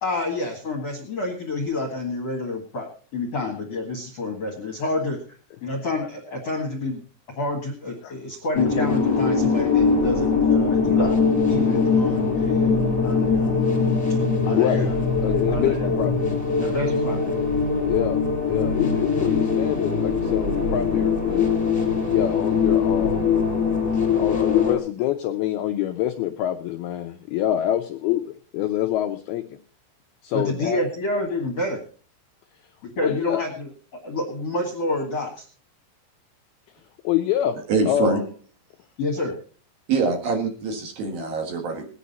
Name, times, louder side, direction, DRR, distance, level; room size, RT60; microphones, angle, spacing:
voice 1, 0.0-5.2 5.6-7.0 7.4-11.1 11.5-13.6 14.5-15.0 15.5-16.0 16.6-17.3 30.3-31.8 33.0-33.7 34.0-35.5 39.0-39.4, left 2 dB, 55° left, 2 dB, 1.8 m, -28 dB
sound 1, 8.5-24.8, left 5 dB, 5° left, 2.0 m, -22 dB
voice 2, 14.5-14.9 15.2-16.4 17.9-21.5 22.1-23.3 24.2-29.4 30.2-30.8 33.0-33.4 37.0-38.2, left 12 dB, 85° left, 6 dB, 2.2 m, -26 dB
voice 3, 37.7-38.2 39.9-41.9, right 4 dB, 60° right, 4 dB, 3.2 m, -24 dB
19.0 x 10.0 x 4.1 m, 0.40 s
omnidirectional pair, 5.5 m